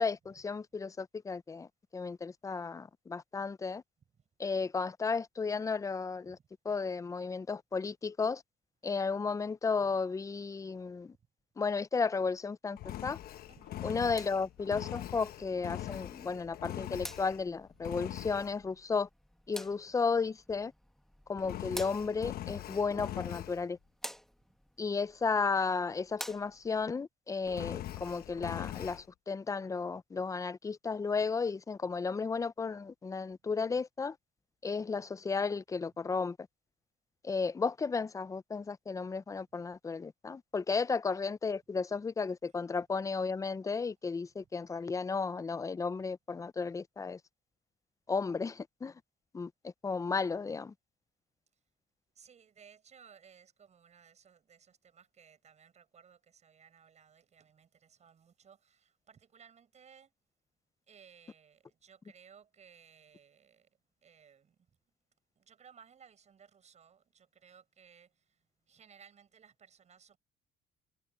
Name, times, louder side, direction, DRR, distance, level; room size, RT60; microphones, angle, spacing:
voice 1, 0.0-3.8 4.4-6.4 6.6-8.4 8.8-11.1 11.6-13.2 13.8-19.1 19.5-20.7 21.3-23.8 24.8-34.2 34.6-36.4 37.2-47.2 48.1-48.9 49.3-50.7, left 4 dB, 20° left, 0.5 m, -34 dB
Engine, 12.8-17.5 17.8-18.6 21.4-23.6 27.4-29.0, left 13 dB, 65° left, 1.0 m, -42 dB
sound 1, 13.8-26.9, equal, ahead, 1.4 m, -51 dB
voice 2, 52.1-60.1 60.9-63.7 64.0-64.6 65.4-70.2, right 7 dB, 40° right, 7.8 m, -60 dB
cardioid pair, 110°, 17 cm